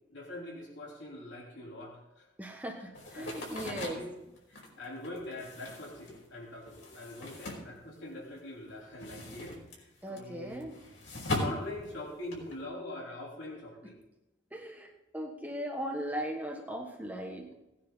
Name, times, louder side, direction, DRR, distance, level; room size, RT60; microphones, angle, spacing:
voice 1, 0.1-2.3 3.1-3.4 3.6-4.1 4.5-10.6 11.3-14.0, left 1 dB, 70° left, -3 dB, 3.3 m, -43 dB
voice 2, 2.4-4.0 10.0-10.7 14.5-17.5, equal, 10° right, 1 dB, 1.2 m, -38 dB
sound 1, 2.9-8.4 8.7-12.6, left 1 dB, 85° left, 5.2 m, -40 dB
18.5 x 9.9 x 4.0 m, 0.97 s
head